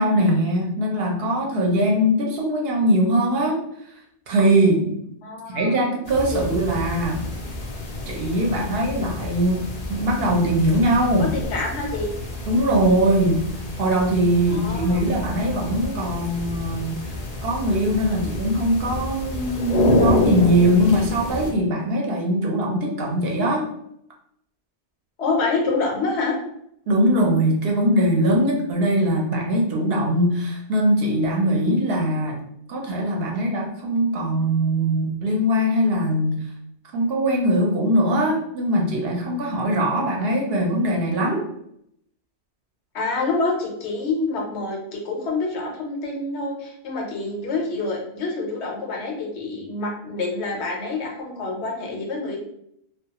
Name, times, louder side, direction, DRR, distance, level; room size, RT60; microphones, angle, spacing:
voice 1, 0.0-3.6 4.3-5.0 5.5-7.2 8.1-9.6 9.9-11.3 12.5-13.5 13.8-17.1 17.4-23.7 26.9-32.4 32.7-36.4 36.9-41.4, right 1 dB, 65° right, 0 dB, 0.8 m, -21 dB
voice 2, 5.2-5.8 6.3-6.6 11.2-12.1 14.5-15.1 25.2-26.3 42.9-52.4, left 3 dB, 80° left, -1 dB, 1.0 m, -27 dB
sound 1, 6.1-21.5, left 2 dB, 50° left, 0.5 m, -28 dB
2.4 x 2.3 x 2.8 m, 0.74 s
omnidirectional pair, 1.1 m